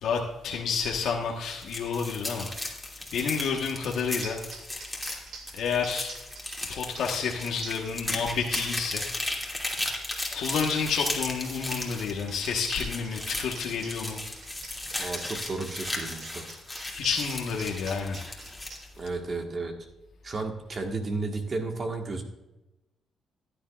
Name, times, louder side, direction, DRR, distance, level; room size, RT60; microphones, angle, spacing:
voice 1, 0.0-2.5 3.1-4.4 5.5-6.1 6.7-9.1 10.3-14.2 16.9-18.3, left 6 dB, 75° left, -1 dB, 1.2 m, -30 dB
sound 1, 1.5-18.9, left 2 dB, 5° left, 2.5 m, -36 dB
sound 2, 3.9-4.0 4.2-18.8, right 4 dB, 70° right, 2.2 m, -46 dB
voice 2, 15.0-16.4 19.0-19.7 20.2-22.2, right 3 dB, 40° right, 3 dB, 1.5 m, -33 dB
15.0 x 10.0 x 2.4 m, 0.98 s
cardioid pair, 90°, 0 cm